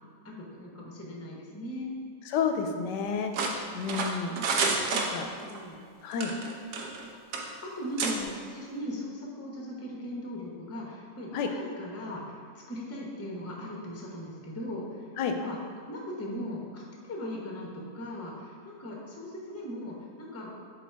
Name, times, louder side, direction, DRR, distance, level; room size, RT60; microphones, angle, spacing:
voice 1, 0.2-1.9 3.4-3.9 4.9-5.8 7.6-15.1 15.4-15.6 15.9-20.6, left 1 dB, 15° left, -2 dB, 0.6 m, -39 dB
voice 2, 2.3-3.3 3.8-4.3 4.9-5.3 6.0-6.3 11.3-11.5 15.2-15.3, left 6 dB, 80° left, 5 dB, 1.2 m, -30 dB
sound 1, 3.3-5.6 6.1-7.0 7.3-7.5 8.0-8.1, right 4 dB, 70° right, 1.2 m, -29 dB
7.1 x 4.1 x 4.6 m, 2.1 s
omnidirectional pair, 1.9 m